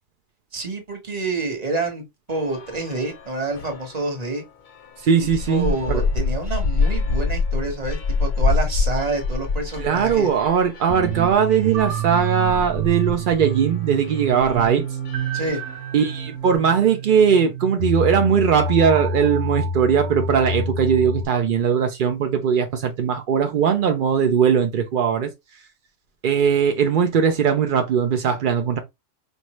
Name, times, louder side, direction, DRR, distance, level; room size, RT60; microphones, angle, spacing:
voice 1, 0.5-2.0 2.3-4.4 5.5-10.3 15.3-15.6, right 3 dB, 30° right, 1.2 m, -27 dB
sound 1, 2.3-4.2 4.7-16.2, left 4 dB, 50° left, 0.6 m, -27 dB
voice 2, 5.0-6.0 9.8-14.9 15.9-25.3 26.2-28.8, right 7 dB, 60° right, 0.5 m, -19 dB
sound 2, 10.9-21.2, right 3 dB, 90° right, 1.2 m, -27 dB
4.7 x 2.7 x 3.0 m
omnidirectional pair, 1.5 m